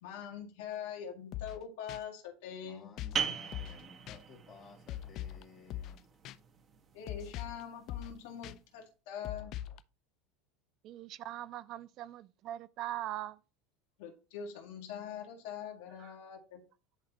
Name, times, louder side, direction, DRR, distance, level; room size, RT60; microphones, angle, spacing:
voice 1, 0.0-2.9 6.9-9.5 14.0-16.6, left 8 dB, 75° left, 1.8 m, -43 dB
sound 1, 1.3-1.6 1.9-2.0 3.0-3.2 3.5-3.8 4.1-4.2 4.9-5.4 5.7-6.0 6.2-6.4 7.1-7.6 7.9-8.1 8.4-8.5 9.2-9.8, left 12 dB, 50° left, 0.4 m, -41 dB
voice 2, 2.6-6.1, left 5 dB, 30° left, 2.5 m, -56 dB
sound 2, 3.1-8.5, right 6 dB, 30° right, 1.4 m, -41 dB
voice 3, 10.8-13.4 16.0-16.1, right 13 dB, 45° right, 0.3 m, -41 dB
10.0 x 4.0 x 2.9 m
supercardioid pair, 130°, 0 cm